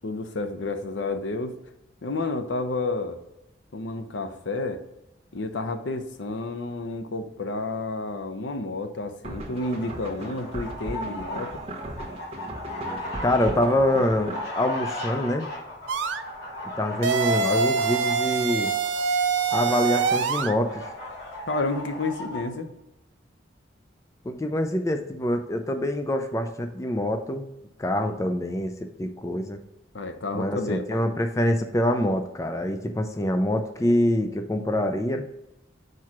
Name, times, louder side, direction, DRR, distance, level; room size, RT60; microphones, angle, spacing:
voice 1, 0.0-1.6 2.0-3.2 3.7-4.8 5.3-11.6 21.5-22.7 29.9-31.0, left 2 dB, 75° left, 8 dB, 0.7 m, -30 dB
sound 1, 9.2-14.4, right 2 dB, 30° right, 0.9 m, -37 dB
sound 2, 9.5-22.4, left 1 dB, 55° left, 2.5 m, -37 dB
voice 2, 13.2-15.5 16.8-18.7 19.5-20.8 24.2-27.5 27.8-29.6 30.3-35.2, left 1 dB, 15° left, 6 dB, 0.4 m, -25 dB
sound 3, 15.9-16.2 17.0-20.5, right 5 dB, 80° right, 0.5 m, -24 dB
4.8 x 4.6 x 5.9 m, 0.90 s
head